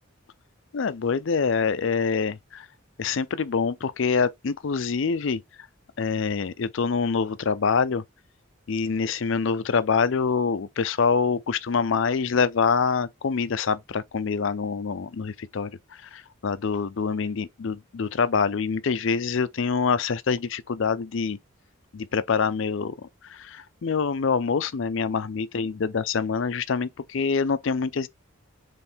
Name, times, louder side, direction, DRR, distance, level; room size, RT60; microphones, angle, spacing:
voice 1, 0.7-2.7 3.0-5.4 6.0-8.0 8.7-15.7 16.1-21.4 21.9-22.9 23.3-28.1, left 5 dB, 60° left, 0.4 m, -25 dB
4.4 x 3.2 x 3.4 m
head